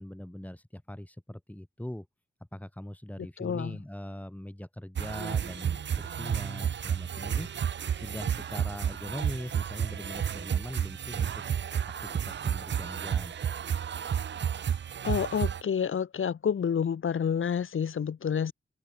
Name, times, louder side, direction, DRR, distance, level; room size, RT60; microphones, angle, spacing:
voice 1, 0.0-2.1 2.5-13.4, left 1 dB, 5° left, 5.2 m, -41 dB
voice 2, 3.4-3.8 15.0-18.5, left 7 dB, 75° left, 1.5 m, -29 dB
sound 1, 5.0-15.6, right 8 dB, 60° right, 0.5 m, -31 dB
open air
wide cardioid pair, 80°, 21 cm